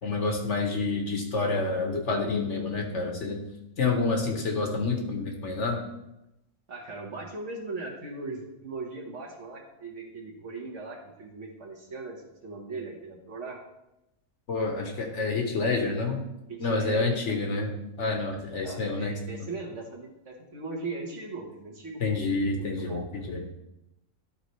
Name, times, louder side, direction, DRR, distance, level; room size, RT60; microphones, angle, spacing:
voice 1, 0.0-3.4 3.8-5.8 14.5-16.2 16.6-17.7 18.0-19.1 22.0-23.4, left 3 dB, 55° left, 2 dB, 1.2 m, -28 dB
voice 2, 6.7-13.6 16.5-17.4 18.6-22.0 22.6-23.1, right 3 dB, 55° right, 0 dB, 1.4 m, -39 dB
11.5 x 4.0 x 3.1 m, 0.89 s
omnidirectional pair, 1.5 m